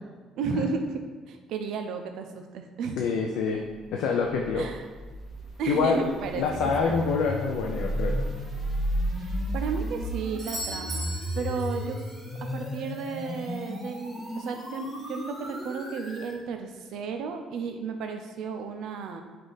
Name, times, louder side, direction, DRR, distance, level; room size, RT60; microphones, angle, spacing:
voice 1, 0.4-1.0 1.3-3.0 4.5-4.9 5.6-7.0 9.2-12.0 12.2-19.2, right 5 dB, 55° right, 5 dB, 0.4 m, -33 dB
voice 2, 3.0-3.6 3.9-4.7 5.7-6.0 6.4-8.2, left 5 dB, 75° left, 1 dB, 0.4 m, -26 dB
sound 1, 4.3-16.4, equal, ahead, 0.8 m, -33 dB
Doorbell, 10.4-12.2 16.3-16.4, right 1 dB, 25° right, 1.2 m, -38 dB
5.2 x 2.5 x 3.9 m, 1.4 s
cardioid pair, 180°, 0 cm